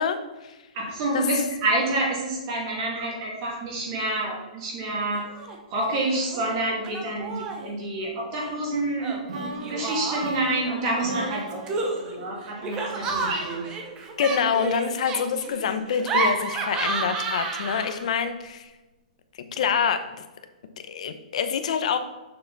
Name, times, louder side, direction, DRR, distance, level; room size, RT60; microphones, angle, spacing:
voice 1, 0.0-0.6 1.1-1.2 14.2-18.7 19.4-20.0 20.9-22.0, left 7 dB, 50° left, 9 dB, 0.8 m, -26 dB
voice 2, 0.7-5.3 5.7-13.7, right 2 dB, 30° right, -1 dB, 2.3 m, -28 dB
Laughter, 5.1-5.6 5.8-6.4 6.8-7.7 9.0-10.5 11.2-18.1, right 3 dB, 15° right, 0.8 m, -31 dB
sound 1, 9.3-13.2, right 1 dB, 50° right, 1.8 m, -37 dB
6.7 x 6.6 x 4.0 m, 1.1 s
hypercardioid pair, 165°, 4 cm